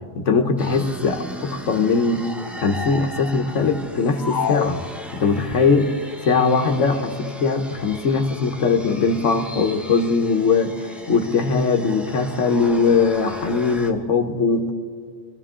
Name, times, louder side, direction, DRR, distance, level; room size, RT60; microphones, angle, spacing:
voice 1, 0.2-2.3 2.6-4.8 5.1-5.9 6.2-10.7 11.1-14.7, left 4 dB, 80° left, 6 dB, 1.4 m, -20 dB
sound 1, 0.6-13.9, equal, ahead, 0.8 m, -37 dB
sound 2, 4.2-5.6, left 7 dB, 55° left, 0.5 m, -28 dB
24.0 x 14.0 x 3.7 m, 2.1 s
omnidirectional pair, 1.2 m